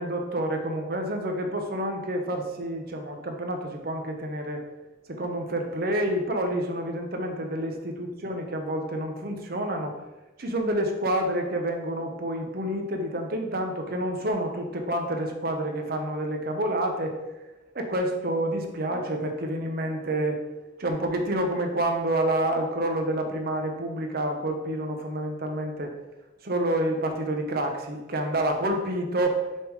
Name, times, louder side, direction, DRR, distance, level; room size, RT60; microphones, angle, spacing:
voice 1, 0.0-4.6 5.1-10.0 10.4-17.1 17.7-20.4 20.8-25.9 26.4-29.5, right 1 dB, 50° right, 3 dB, 0.9 m, -28 dB
6.8 x 3.7 x 4.7 m, 1.1 s
head